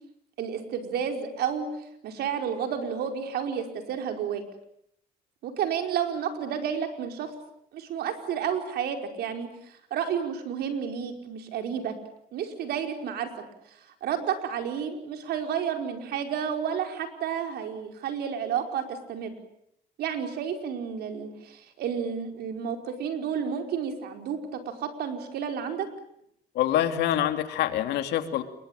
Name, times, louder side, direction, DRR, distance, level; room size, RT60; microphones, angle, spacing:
voice 1, 0.4-1.7 2.0-4.4 5.4-7.3 7.7-11.9 12.3-13.3 13.7-19.3 20.0-25.9, right 8 dB, 70° right, 5 dB, 5.0 m, -31 dB
voice 2, 26.5-28.4, left 11 dB, 80° left, 8 dB, 2.8 m, -25 dB
28.5 x 22.5 x 9.1 m, 0.75 s
cardioid pair, 110°, 17 cm